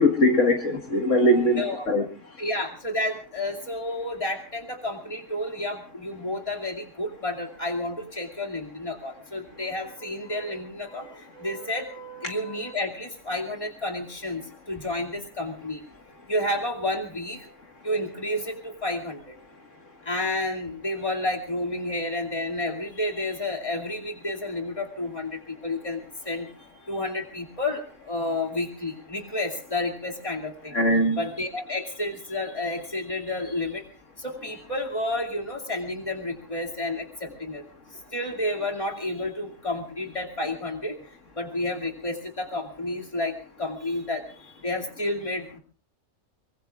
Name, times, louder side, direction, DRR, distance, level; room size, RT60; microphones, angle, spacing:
voice 1, 0.0-1.6 1.9-2.0 30.7-31.2, left 1 dB, 65° left, 2.1 m, -20 dB
voice 2, 2.4-15.8 16.3-17.5 17.8-19.4 20.0-26.5 26.9-30.8 31.0-33.8 34.2-37.6 37.9-41.0 41.4-45.6, left 1 dB, 25° left, 2.5 m, -31 dB
24.0 x 23.5 x 2.4 m
omnidirectional pair, 1.4 m